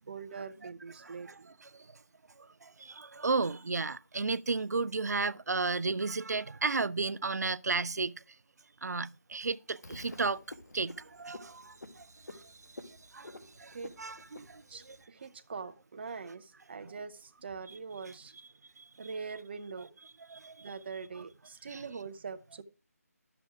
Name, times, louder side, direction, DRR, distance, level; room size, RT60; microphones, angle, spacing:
voice 1, 0.1-1.5 13.6-14.0 14.7-18.3 19.0-19.9 20.6-22.6, right 5 dB, 40° right, 0.7 m, -43 dB
voice 2, 1.0-1.3 2.6-8.1 8.8-10.4 10.7-12.4 12.8-14.6 18.8-18.9 20.3-20.7 21.7-21.8, right 4 dB, 80° right, 0.5 m, -34 dB
Frog, 9.8-15.0, left 2 dB, 85° left, 1.7 m, -50 dB
11.5 x 7.0 x 4.8 m
figure-of-eight pair, 165°, 9 cm